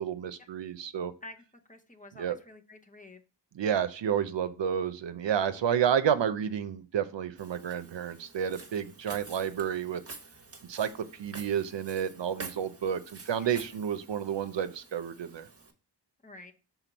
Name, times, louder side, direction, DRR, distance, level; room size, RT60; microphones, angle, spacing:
voice 1, 0.0-1.1 2.1-2.4 3.5-10.0 10.7-15.5, right 8 dB, 80° right, 11 dB, 0.6 m, -30 dB
voice 2, 1.7-3.2 13.4-13.5 16.2-16.5, left 2 dB, 20° left, 4 dB, 0.8 m, -49 dB
Walk footsteps, 7.4-15.7, right 3 dB, 35° right, 0.9 m, -48 dB
5.9 x 4.0 x 4.0 m, 0.36 s
wide cardioid pair, 70°, 43 cm